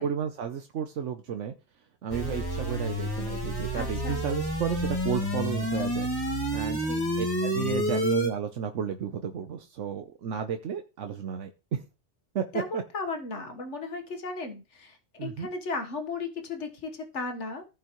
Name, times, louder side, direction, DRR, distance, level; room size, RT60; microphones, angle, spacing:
voice 1, 0.0-1.5 2.0-6.1 6.5-6.9 7.2-11.8 12.3-12.4 12.7-12.8 15.2-15.5, right 8 dB, 80° right, 6 dB, 1.1 m, -33 dB
sound 1, 2.1-8.3, equal, 20° left, 2.2 m, -29 dB
voice 2, 3.7-4.2 6.7-7.1 12.5-17.7, left 3 dB, 75° left, 6 dB, 1.6 m, -36 dB
15.0 x 5.4 x 3.0 m, 0.30 s
omnidirectional pair, 1.2 m